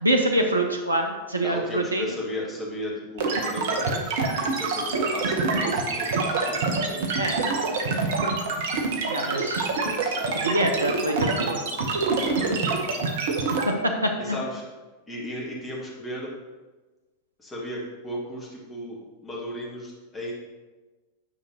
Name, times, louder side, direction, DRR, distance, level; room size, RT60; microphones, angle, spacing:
voice 1, 0.0-2.1 7.2-7.4 9.1-9.7 10.3-11.6 13.7-14.4, right 1 dB, 80° right, 3 dB, 0.6 m, -25 dB
voice 2, 1.4-7.0 7.4-8.0 9.2-10.7 12.4-12.8 14.2-14.7 15.1-16.3 17.4-20.3, left 1 dB, 15° left, -4 dB, 1.8 m, -36 dB
sound 1, 3.2-13.6, right 4 dB, 55° right, 0.9 m, -26 dB
8.4 x 5.3 x 2.9 m, 1.2 s
figure-of-eight pair, 90°, 0 cm